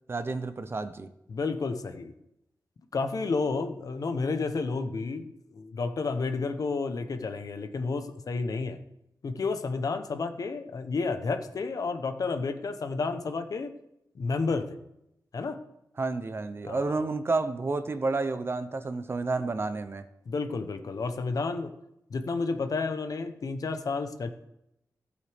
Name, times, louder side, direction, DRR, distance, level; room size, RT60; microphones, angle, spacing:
voice 1, 0.1-1.1 16.0-20.1, right 3 dB, 35° right, 11 dB, 0.6 m, -30 dB
voice 2, 1.3-2.1 2.9-8.8 9.2-13.7 14.1-14.8 15.3-15.6 16.6-17.0 20.3-21.7 22.1-24.3, left 4 dB, 60° left, 8 dB, 0.9 m, -31 dB
15.5 x 8.1 x 3.5 m, 0.85 s
wide cardioid pair, 155°, 7 cm